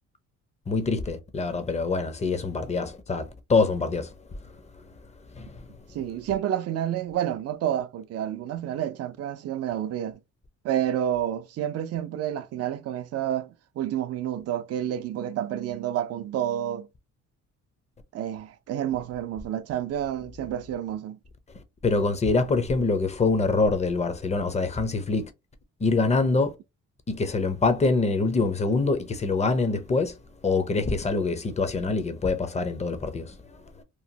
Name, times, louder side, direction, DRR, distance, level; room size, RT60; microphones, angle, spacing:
voice 1, 0.7-4.1 5.3-5.7 21.8-25.3 25.8-26.6 27.1-30.2 30.4-33.8, left 3 dB, 20° left, 0.6 m, -25 dB
voice 2, 5.9-10.2 10.6-16.9 18.1-21.2, right 11 dB, 55° right, 0.4 m, -29 dB
3.0 x 2.0 x 2.7 m
cardioid pair, 90°, 30 cm